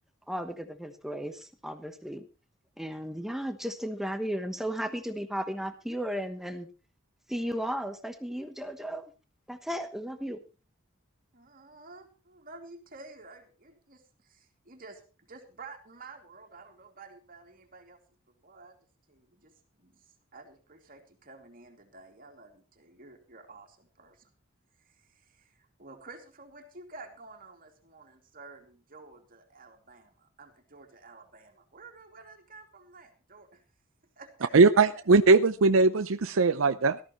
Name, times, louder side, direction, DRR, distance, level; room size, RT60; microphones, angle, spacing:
voice 1, 0.3-2.3 2.8-6.7 7.3-9.0 9.5-10.4, equal, ahead, 7 dB, 1.1 m, -35 dB
voice 2, 11.3-18.0 18.4-18.8 19.1-24.3 24.8-33.6 34.2-34.5 34.9-35.0, right 3 dB, 45° right, 3 dB, 2.7 m, -51 dB
voice 3, 34.5-37.0, right 3 dB, 75° right, 10 dB, 0.6 m, -20 dB
19.0 x 13.5 x 3.1 m, 0.33 s
head